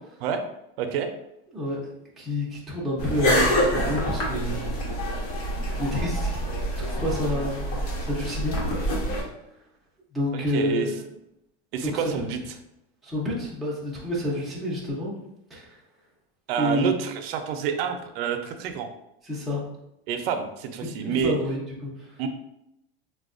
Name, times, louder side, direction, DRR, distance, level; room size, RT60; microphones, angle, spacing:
voice 1, 0.8-1.1 10.5-10.9 11.7-12.4 16.5-18.9 20.1-21.3 22.2-22.3, right 7 dB, 70° right, 6 dB, 0.5 m, -28 dB
voice 2, 1.5-1.9 2.2-4.7 5.8-6.5 6.8-8.6 10.1-11.1 11.8-12.3 13.0-15.1 15.5-15.8 16.5-16.9 19.2-19.6 20.8-22.1, left 1 dB, ahead, -7 dB, 0.4 m, -29 dB
sound 1, 3.0-9.2, equal, 70° left, 1.0 m, -26 dB
4.1 x 2.2 x 2.4 m, 0.83 s
supercardioid pair, 165°, 31 cm